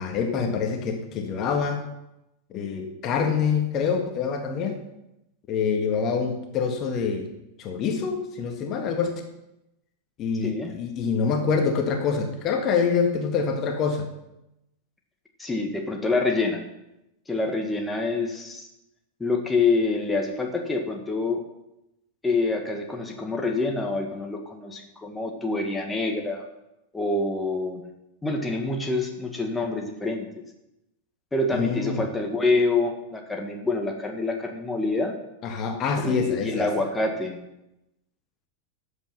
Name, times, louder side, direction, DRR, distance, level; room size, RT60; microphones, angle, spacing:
voice 1, 0.0-1.8 2.5-4.8 5.5-7.3 7.6-9.1 10.2-14.1 31.5-32.1 35.4-36.7, left 5 dB, 35° left, 4 dB, 1.7 m, -26 dB
voice 2, 15.4-16.6 17.3-18.7 19.2-21.4 22.2-26.5 26.9-27.8 28.2-30.3 31.3-35.1 36.0-37.4, left 3 dB, 10° left, 2 dB, 1.8 m, -26 dB
13.5 x 8.6 x 5.6 m, 0.90 s
figure-of-eight pair, 90°, 0 cm